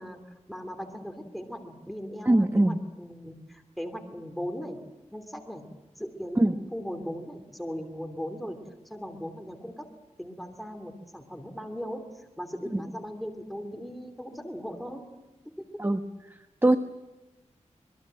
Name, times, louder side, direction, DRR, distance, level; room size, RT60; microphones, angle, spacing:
voice 1, 0.0-4.8 5.1-5.7 6.0-8.6 8.9-9.9 10.2-15.1 15.4-15.6, equal, ahead, 5 dB, 3.0 m, -38 dB
voice 2, 2.2-2.8 6.4-6.6 12.7-12.8 15.8-16.0 16.6-16.8, right 1 dB, 20° right, 7 dB, 1.1 m, -21 dB
26.0 x 22.0 x 7.7 m, 1.0 s
wide cardioid pair, 90°, 12 cm